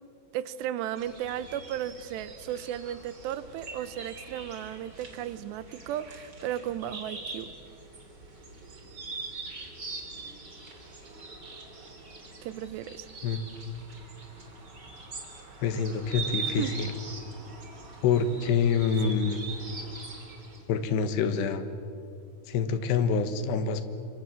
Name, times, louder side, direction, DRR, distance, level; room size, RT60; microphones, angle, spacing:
voice 1, 0.3-7.5 12.4-13.1 16.5-16.8 19.0-19.1, right 11 dB, 80° right, 15 dB, 3.0 m, -35 dB
sound 1, 1.0-20.6, right 4 dB, 25° right, 3.4 m, -42 dB
voice 2, 15.6-16.9 18.0-19.4 20.7-21.7 22.5-23.9, left 6 dB, 75° left, 10 dB, 3.4 m, -26 dB
27.0 x 25.0 x 7.7 m, 2.6 s
omnidirectional pair, 5.0 m